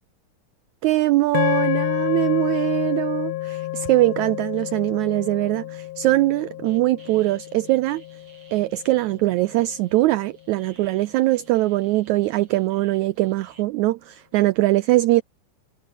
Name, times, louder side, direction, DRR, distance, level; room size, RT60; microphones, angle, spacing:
voice 1, 0.8-8.0 8.5-15.2, right 17 dB, 80° right, 1.7 m, -21 dB
sound 1, 1.3-9.7, left 16 dB, 85° left, 1.4 m, -29 dB
sound 2, 6.6-13.6, right 4 dB, 40° right, 5.8 m, -55 dB
omnidirectional pair, 3.9 m